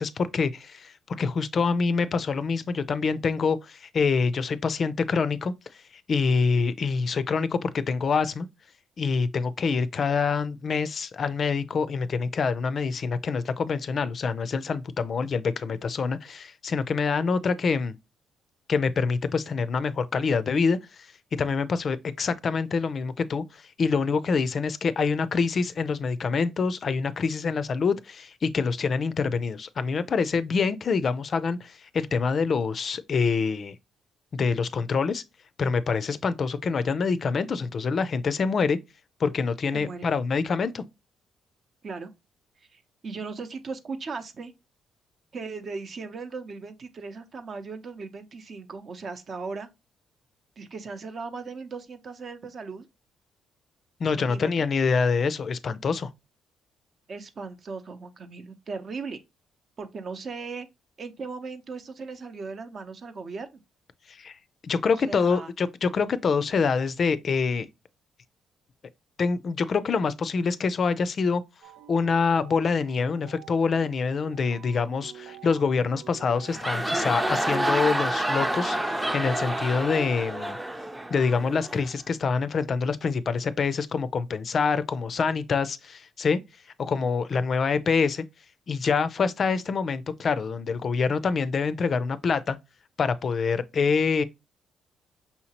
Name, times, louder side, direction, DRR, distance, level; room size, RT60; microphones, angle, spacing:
voice 1, 0.0-8.5 9.0-17.9 18.7-33.8 34.3-35.2 35.6-38.8 39.2-40.8 54.0-56.1 64.1-67.7 69.2-71.4 71.9-80.6 81.1-86.4 86.8-88.2 88.7-92.6 93.0-94.2, left 5 dB, 50° left, 0.4 m, -26 dB
voice 2, 39.7-40.1 41.8-42.1 42.7-44.5 45.3-49.7 50.6-52.9 54.1-54.7 57.1-59.2 59.8-60.7 61.0-63.5 65.0-65.5, right 4 dB, 50° right, 0.7 m, -37 dB
sound 1, 71.6-80.5, right 11 dB, 90° right, 0.4 m, -48 dB
sound 2, 76.3-81.9, right 1 dB, 10° right, 0.5 m, -28 dB
5.6 x 2.8 x 2.8 m
cardioid pair, 90°, 0 cm